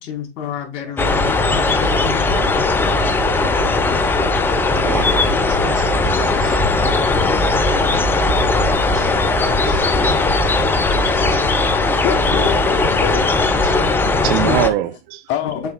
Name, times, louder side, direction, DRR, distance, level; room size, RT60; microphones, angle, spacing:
voice 1, 0.0-2.4 14.4-14.6 15.4-15.5, left 8 dB, 45° left, 4.0 m, -29 dB
sound 1, 1.0-14.7, left 3 dB, 5° left, 0.3 m, -17 dB
voice 2, 4.0-4.3 4.8-6.6 7.9-8.1 8.9-9.2 9.7-9.8 10.0-10.1 11.1-11.5 13.6-13.8 14.2-15.2, right 13 dB, 45° right, 0.5 m, -26 dB
voice 3, 11.5-13.3 14.7-15.0 15.3-15.6, left 11 dB, 30° left, 0.8 m, -26 dB
7.3 x 3.8 x 3.8 m
hypercardioid pair, 115°, 36 cm